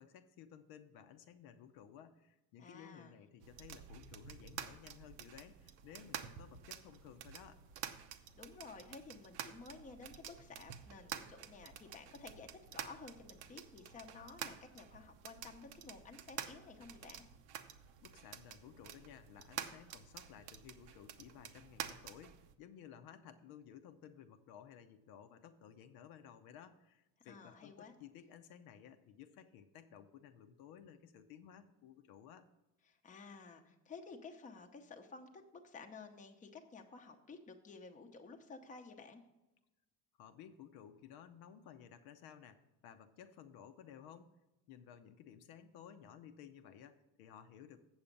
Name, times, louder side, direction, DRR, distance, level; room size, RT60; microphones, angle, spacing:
voice 1, 0.0-7.6 18.0-32.5 40.2-44.3 44.7-47.8, left 9 dB, 70° left, 8 dB, 0.8 m, -56 dB
voice 2, 2.6-3.2 8.3-17.2 27.2-27.9 32.9-39.2, left 4 dB, 20° left, 4 dB, 0.8 m, -53 dB
sound 1, 3.4-22.5, right 9 dB, 80° right, 0.8 m, -49 dB
8.0 x 7.1 x 5.3 m, 1.0 s
cardioid pair, 155°, 37 cm